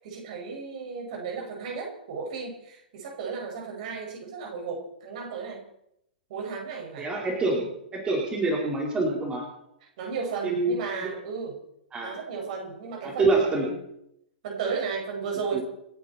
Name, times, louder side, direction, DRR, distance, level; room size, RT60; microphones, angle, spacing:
voice 1, 0.0-5.6 6.3-7.1 10.0-11.6 12.0-13.8 14.4-15.6, right 5 dB, 50° right, 0 dB, 6.0 m, -34 dB
voice 2, 7.0-9.4 10.4-10.7 11.0-11.1 11.9-12.1 13.0-13.6 15.5-15.6, right 3 dB, 20° right, -2 dB, 4.4 m, -26 dB
29.5 x 10.0 x 4.4 m, 0.78 s
figure-of-eight pair, 105°, 5 cm